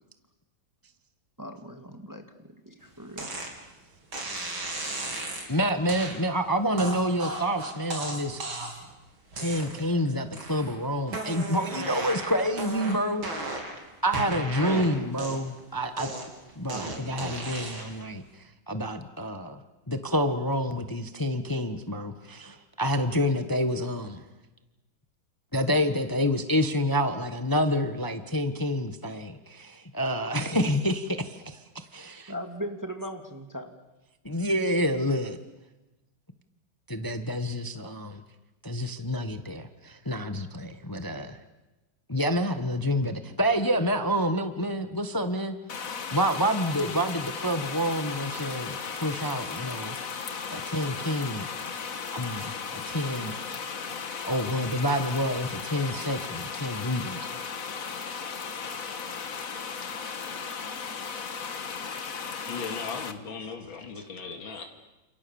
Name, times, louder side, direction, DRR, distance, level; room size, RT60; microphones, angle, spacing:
voice 1, 1.4-3.4 32.3-33.7, equal, 10° right, 5 dB, 2.0 m, -39 dB
sound 1, 3.2-3.5 4.1-5.5 5.9-6.2 6.8-8.9 9.3-9.9 10.3-10.8 11.1-13.8 14.1-15.6 16.0-18.0, right 2 dB, 85° right, 4.8 m, -35 dB
voice 2, 5.5-8.4 9.4-13.3 14.0-16.1 16.5-18.2 18.7-19.6 19.9-24.2 25.5-32.3 34.2-35.4 36.9-38.2 38.6-41.4 42.1-45.6 46.1-49.9 50.5-51.5 52.1-53.3 54.3-57.3, equal, 15° left, 8 dB, 1.1 m, -28 dB
sound 2, 45.7-63.1, left 5 dB, 45° left, 1.7 m, -36 dB
voice 3, 62.5-64.6, left 5 dB, 80° left, 4 dB, 2.9 m, -37 dB
30.0 x 28.0 x 7.1 m, 1.0 s
omnidirectional pair, 2.2 m